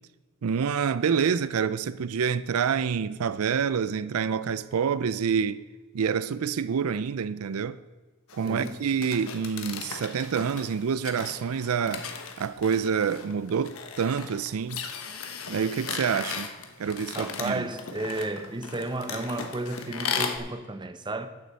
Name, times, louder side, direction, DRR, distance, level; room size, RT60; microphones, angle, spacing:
voice 1, 0.4-5.6 5.9-7.8 8.3-12.1 12.4-14.8 15.5-16.5 16.8-17.7, right 6 dB, 90° right, 0.4 m, -27 dB
sound 1, 8.3-20.4, left 6 dB, 75° left, 1.2 m, -37 dB
voice 2, 8.4-8.8 17.1-21.3, right 2 dB, 20° right, 0.7 m, -33 dB
13.0 x 9.4 x 4.1 m
head